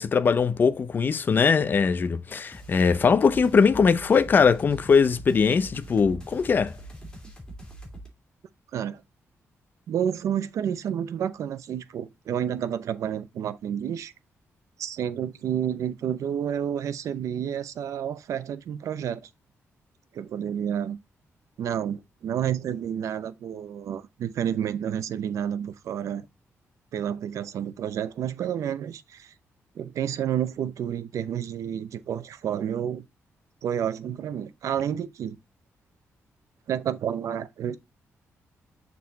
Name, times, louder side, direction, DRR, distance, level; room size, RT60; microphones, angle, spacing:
voice 1, 0.0-6.7, left 5 dB, 40° left, 0.6 m, -21 dB
sound 1, 2.5-8.1, right 1 dB, 15° left, 2.5 m, -43 dB
voice 2, 9.9-14.1 14.8-19.3 20.1-21.0 21.6-26.3 26.9-29.3 29.8-33.0 33.6-35.4 36.7-37.8, right 9 dB, 75° right, 0.7 m, -30 dB
6.6 x 4.1 x 4.1 m
wide cardioid pair, 150°, 5 cm